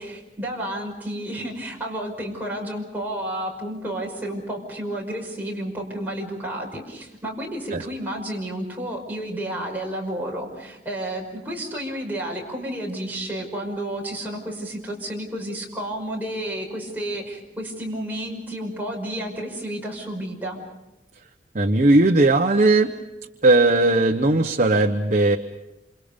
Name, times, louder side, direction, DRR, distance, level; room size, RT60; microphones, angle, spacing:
voice 1, 0.0-20.6, right 1 dB, 10° right, -2 dB, 5.6 m, -31 dB
voice 2, 21.5-22.9 23.4-25.4, right 2 dB, 45° right, 2 dB, 1.0 m, -17 dB
28.0 x 27.0 x 5.2 m, 0.94 s
head